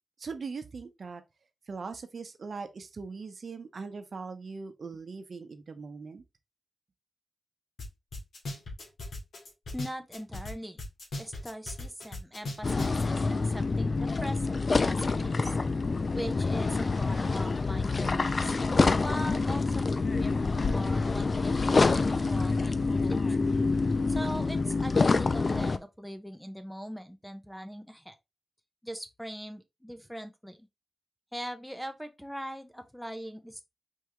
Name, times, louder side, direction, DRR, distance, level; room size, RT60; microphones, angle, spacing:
voice 1, 0.2-1.2 1.7-6.2, right 4 dB, 60° right, 0.8 m, -40 dB
sound 1, 7.8-7.9 8.1-10.5 10.8-13.0, left 2 dB, 80° left, 2.3 m, -37 dB
voice 2, 9.7-10.8 11.2-15.6 16.2-18.6 19.0-23.4 24.1-28.1 28.8-30.7 31.3-33.7, equal, ahead, 0.7 m, -41 dB
sound 2, 12.6-25.8, left 3 dB, 45° left, 0.4 m, -27 dB
4.7 x 3.5 x 3.1 m
wide cardioid pair, 80°, 0 cm